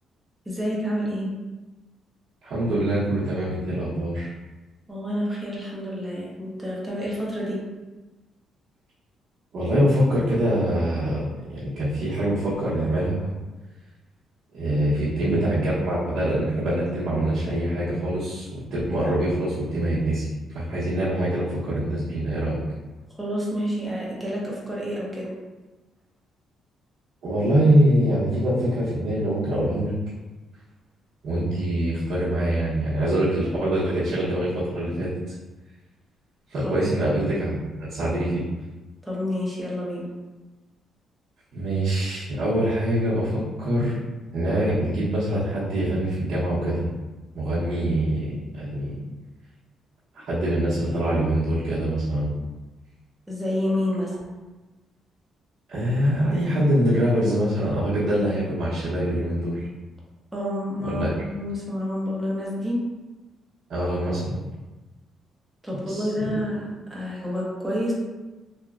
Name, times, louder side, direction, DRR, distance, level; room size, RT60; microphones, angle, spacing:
voice 1, 0.5-1.3 4.9-7.6 23.2-25.3 36.6-36.9 39.0-40.1 53.3-54.2 60.3-62.8 65.6-67.9, equal, 10° right, -5 dB, 0.9 m, -28 dB
voice 2, 2.4-4.3 9.5-11.2 11.5-13.3 14.5-20.2 20.5-22.6 27.2-30.0 31.2-35.3 36.5-38.4 41.5-44.0 44.3-46.8 47.3-49.0 50.1-52.3 55.7-59.7 60.8-61.1 63.7-64.4 65.9-66.3, right 1 dB, 70° right, -12 dB, 0.8 m, -24 dB
2.9 x 2.2 x 2.4 m, 1.2 s
cardioid pair, 90°, 0 cm